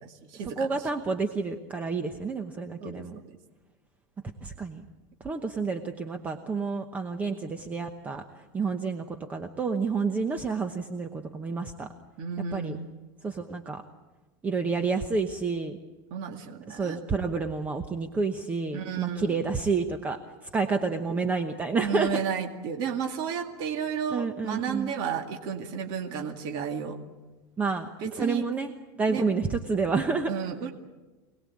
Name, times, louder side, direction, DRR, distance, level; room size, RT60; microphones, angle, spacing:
voice 1, 0.0-0.7 2.8-3.4 12.2-12.9 16.1-17.0 18.7-19.4 21.8-27.0 28.0-28.4 29.1-29.2 30.3-30.7, right 7 dB, 40° right, 4 dB, 2.1 m, -32 dB
voice 2, 0.6-3.2 4.4-4.8 5.2-8.2 8.5-11.9 12.5-12.8 13.2-13.8 14.4-15.8 16.7-22.2 24.1-24.9 27.6-27.9 28.2-30.3, right 4 dB, 15° right, 7 dB, 1.0 m, -29 dB
25.5 x 19.5 x 8.6 m, 1.2 s
supercardioid pair, 160°, 11 cm